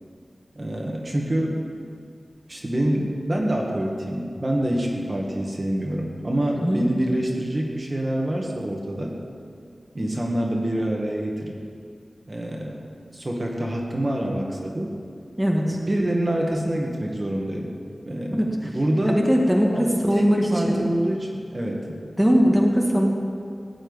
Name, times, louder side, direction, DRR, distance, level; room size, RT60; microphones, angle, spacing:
voice 1, 0.6-1.7 2.5-9.1 9.9-11.6 12.3-15.0 15.9-17.7 18.1-19.3 19.7-21.9, right 1 dB, 35° right, -1 dB, 2.0 m, -26 dB
voice 2, 15.4-15.8 18.4-18.5 19.0-20.4 20.7-20.9 22.2-23.1, equal, 10° right, -1 dB, 1.8 m, -20 dB
16.0 x 6.4 x 9.8 m, 2.3 s
wide cardioid pair, 85°, 0 cm